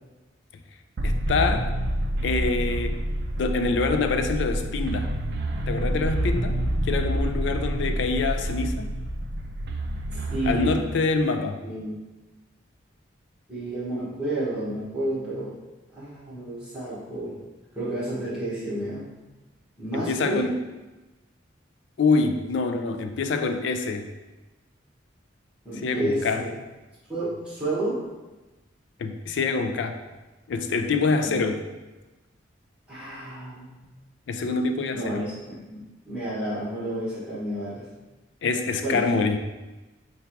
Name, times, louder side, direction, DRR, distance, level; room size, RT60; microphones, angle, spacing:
voice 1, 1.0-1.7 2.2-3.0 3.4-5.1 5.7-6.6 6.9-8.9 10.4-11.6 19.9-20.6 22.0-24.1 25.8-26.5 29.0-30.0 30.5-31.6 34.3-35.2 38.4-39.4, left 4 dB, 65° left, 7 dB, 0.3 m, -25 dB
sound 1, 1.0-10.8, right 1 dB, 55° right, 0.4 m, -28 dB
voice 2, 10.1-10.8 11.6-11.9 13.5-15.5 15.9-17.4 17.7-19.1 19.8-20.5 25.6-26.5 27.1-28.1 31.2-31.4 32.9-33.8 34.9-37.9 38.8-39.1, right 1 dB, 5° right, -10 dB, 1.3 m, -31 dB
3.6 x 2.3 x 4.5 m, 1.1 s
head